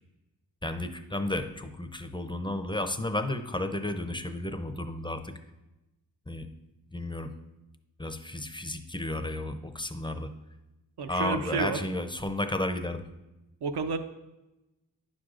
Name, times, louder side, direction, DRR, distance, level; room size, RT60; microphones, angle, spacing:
voice 1, 0.6-5.3 6.3-6.5 6.9-7.3 8.0-10.3 11.1-13.0, left 1 dB, 10° left, 8 dB, 0.5 m, -32 dB
voice 2, 11.0-11.8 13.6-14.0, right 4 dB, 65° right, 8 dB, 0.6 m, -30 dB
9.7 x 6.3 x 2.4 m, 0.99 s
wide cardioid pair, 60°, 43 cm